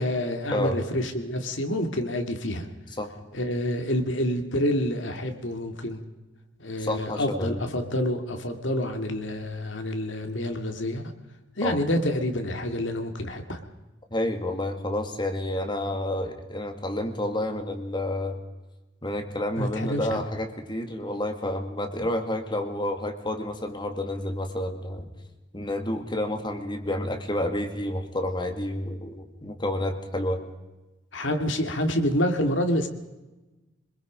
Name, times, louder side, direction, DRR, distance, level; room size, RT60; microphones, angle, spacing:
voice 1, 0.0-2.7 3.3-6.0 6.6-11.1 11.6-13.6 19.6-20.2 31.1-32.9, left 1 dB, 65° left, 5 dB, 2.4 m, -27 dB
voice 2, 6.8-7.6 11.6-11.8 14.1-18.4 19.0-25.0 25.5-30.4, left 1 dB, 25° left, 5 dB, 2.0 m, -29 dB
25.0 x 22.0 x 5.2 m, 1.1 s
head